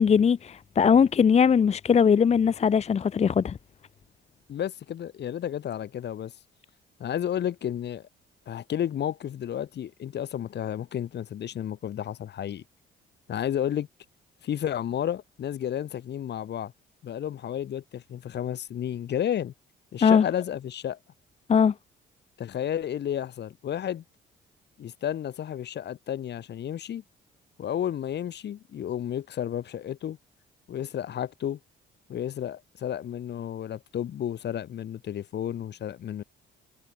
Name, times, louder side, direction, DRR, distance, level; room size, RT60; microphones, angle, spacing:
voice 1, 0.0-3.5 20.0-20.2 21.5-21.7, left 7 dB, 35° left, 0.5 m, -20 dB
voice 2, 4.5-6.3 7.0-8.0 8.5-12.6 13.3-13.9 14.4-16.7 17.0-19.5 19.9-21.0 22.4-24.0 24.8-27.0 27.6-30.2 30.7-31.6 32.1-36.2, left 10 dB, 60° left, 1.3 m, -32 dB
cardioid pair, 90°, 20 cm